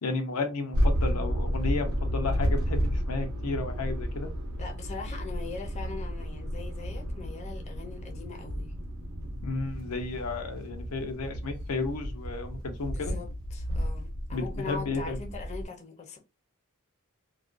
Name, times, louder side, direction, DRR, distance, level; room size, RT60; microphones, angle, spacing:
voice 1, 0.0-4.3 9.4-13.2 14.3-15.2, left 3 dB, 85° left, 0.5 m, -33 dB
sound 1, 0.7-15.6, equal, 80° right, 0.7 m, -32 dB
voice 2, 4.6-8.7 12.9-16.2, left 4 dB, 30° left, 0.5 m, -41 dB
2.4 x 2.1 x 2.4 m
head